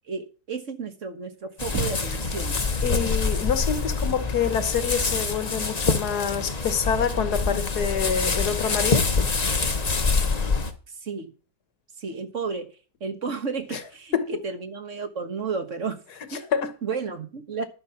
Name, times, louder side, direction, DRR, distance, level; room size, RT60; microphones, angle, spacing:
voice 1, 0.1-2.5 11.0-11.3 12.0-12.7 13.0-16.0 16.3-17.6, right 5 dB, 50° right, 1.6 m, -32 dB
sound 1, 1.6-10.7, left 4 dB, 30° left, 1.0 m, -25 dB
Knock, 1.7-2.4, right 2 dB, 70° right, 2.7 m, -30 dB
voice 2, 2.8-9.0 13.7-13.8 14.1-14.3 16.5-16.7, left 7 dB, 80° left, 1.9 m, -26 dB
11.5 x 7.7 x 5.8 m
omnidirectional pair, 1.7 m